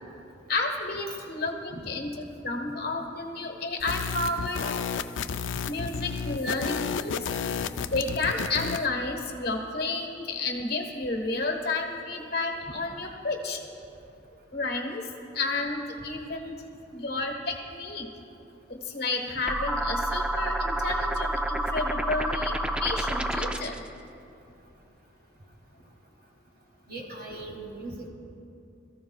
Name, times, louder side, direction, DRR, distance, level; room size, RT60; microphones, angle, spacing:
voice 1, 0.5-4.6 5.7-7.2 7.9-13.6 14.5-15.1 15.3-16.6 16.9-18.1 18.7-23.8, left 3 dB, 55° left, 2 dB, 1.4 m, -31 dB
sound 1, 3.8-8.9, left 6 dB, 90° left, 0.4 m, -32 dB
sound 2, 19.5-23.9, right 1 dB, 5° right, 0.3 m, -29 dB
voice 2, 26.9-28.1, right 2 dB, 55° right, -2 dB, 2.8 m, -39 dB
22.5 x 14.5 x 2.4 m, 2.6 s
head